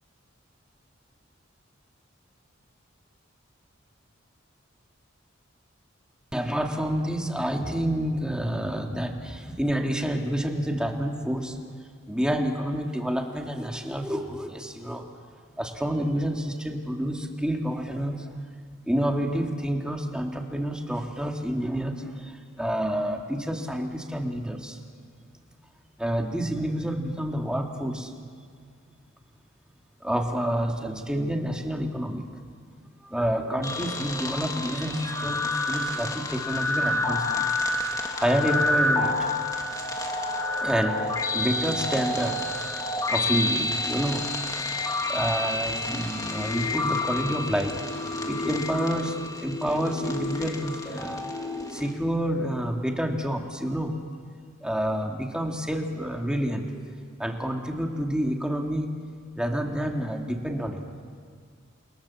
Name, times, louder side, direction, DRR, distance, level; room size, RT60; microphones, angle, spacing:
voice 1, 6.3-11.6 12.1-15.1 15.5-18.3 18.9-24.8 26.0-28.1 30.0-32.2 33.0-37.6 38.2-39.3 40.6-42.5 43.1-44.2 45.1-47.8 48.3-54.0 54.6-56.9 57.2-58.9 59.3-60.8, equal, 5° right, 2 dB, 2.3 m, -28 dB
sound 1, 33.6-51.9, left 2 dB, 20° left, 2.2 m, -29 dB
30.0 x 23.0 x 7.2 m, 2.1 s
head